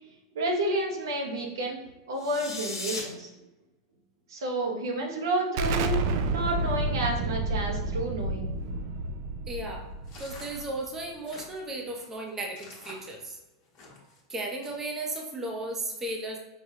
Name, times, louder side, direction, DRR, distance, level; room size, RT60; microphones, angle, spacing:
voice 1, 0.3-1.8 2.1-3.3 4.3-8.5, right 1 dB, 70° right, -1 dB, 0.9 m, -30 dB
sound 1, 2.1-3.0, left 3 dB, 75° left, 1.0 m, -36 dB
Explosion, 5.6-11.0, right 2 dB, 55° right, 0.3 m, -30 dB
voice 2, 9.5-9.9 10.2-13.4 14.3-16.4, right 2 dB, 20° right, 1 dB, 0.7 m, -35 dB
sound 2, 10.0-14.2 14.6-15.1, left 3 dB, 45° left, 1.1 m, -49 dB
5.0 x 2.2 x 2.8 m, 1.0 s
hypercardioid pair, 100°, 2 cm